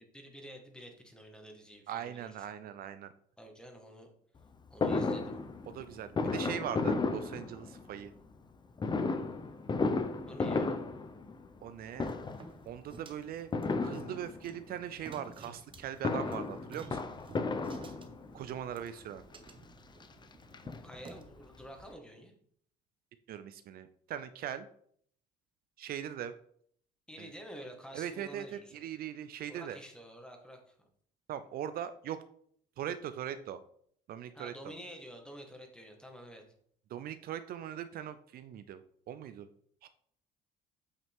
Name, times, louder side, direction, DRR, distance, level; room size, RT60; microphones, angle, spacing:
voice 1, 0.0-2.4 3.4-4.1 4.7-5.4 10.3-10.8 20.8-22.3 27.1-28.8 29.5-30.7 34.3-36.4, equal, 5° left, 2 dB, 1.7 m, -49 dB
voice 2, 1.9-3.1 5.7-8.1 11.6-12.1 12.7-13.5 13.8-17.0 18.3-19.2 23.3-24.7 25.8-26.3 27.2-27.3 27.9-29.8 31.3-32.2 32.8-33.6 34.1-34.5 36.9-38.8 39.1-39.5 39.8-39.9, right 10 dB, 60° right, 11 dB, 0.5 m, -40 dB
Fireworks, 4.8-8.0 8.8-11.7 11.9-12.6 13.5-14.6 15.8-18.4 19.2-19.3 19.6-19.7 20.0-21.3 21.6-21.7 21.8-21.9, left 3 dB, 25° left, 0.7 m, -34 dB
sound 1, 12.1-21.2, right 4 dB, 30° right, 1.0 m, -53 dB
8.2 x 5.7 x 3.6 m, 0.63 s
cardioid pair, 110°, 17 cm